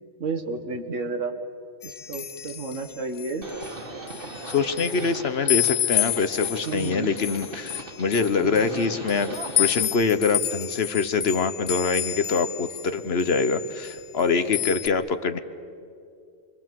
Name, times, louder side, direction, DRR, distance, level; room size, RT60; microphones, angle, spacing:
voice 1, 0.2-1.3 1.8-3.5 4.9-5.3 6.6-7.1 8.4-8.9, right 4 dB, 80° right, 7 dB, 1.9 m, -32 dB
sound 1, 1.8-3.7 4.1-5.1 5.5-12.9 13.2-14.2 14.5-14.9, left 11 dB, 80° left, 1.2 m, -30 dB
Livestock farm animals working animals, 3.4-9.8, right 3 dB, 45° right, 1.8 m, -39 dB
voice 2, 4.5-15.4, left 5 dB, 55° left, 11 dB, 1.2 m, -24 dB
28.5 x 23.5 x 7.6 m, 2.5 s
omnidirectional pair, 1.3 m